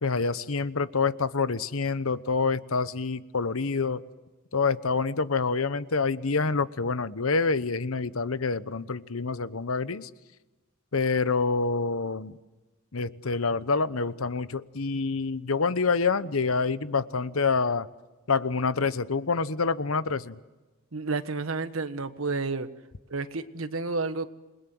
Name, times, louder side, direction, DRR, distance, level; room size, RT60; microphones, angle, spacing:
voice 1, 0.0-4.0 4.5-10.1 10.9-12.4 12.9-17.9 18.3-20.4, left 4 dB, 85° left, 15 dB, 1.0 m, -27 dB
voice 2, 20.9-22.7 23.1-24.3, right 3 dB, 75° right, 11 dB, 1.5 m, -30 dB
28.5 x 21.5 x 7.8 m, 1.2 s
head